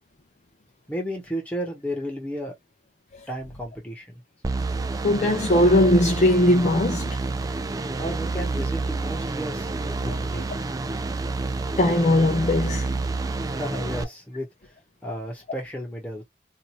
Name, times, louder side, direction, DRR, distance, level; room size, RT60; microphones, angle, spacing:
voice 1, 0.9-2.5 3.3-4.1 8.0-10.5 13.4-14.5 15.0-16.2, equal, 10° left, 1.2 m, -33 dB
sound 1, 4.4-14.0, right 3 dB, 20° right, 0.3 m, -29 dB
voice 2, 5.0-7.2 11.8-12.9, left 1 dB, 40° left, 0.6 m, -19 dB
2.7 x 2.5 x 3.1 m
head